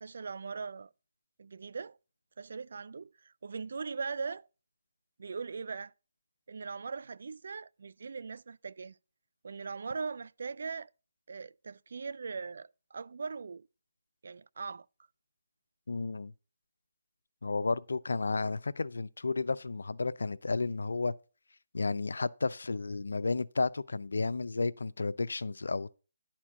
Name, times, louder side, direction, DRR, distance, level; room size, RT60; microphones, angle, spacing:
voice 1, 0.0-0.9 1.4-2.0 2.4-4.5 5.2-5.9 6.5-9.0 9.4-10.9 11.3-13.7 14.2-14.9, right 5 dB, 65° right, 0.3 m, -40 dB
voice 2, 15.9-16.3 17.4-21.1 21.7-26.0, left 3 dB, 85° left, 0.5 m, -32 dB
11.0 x 4.4 x 6.3 m
hypercardioid pair, 165°, 0 cm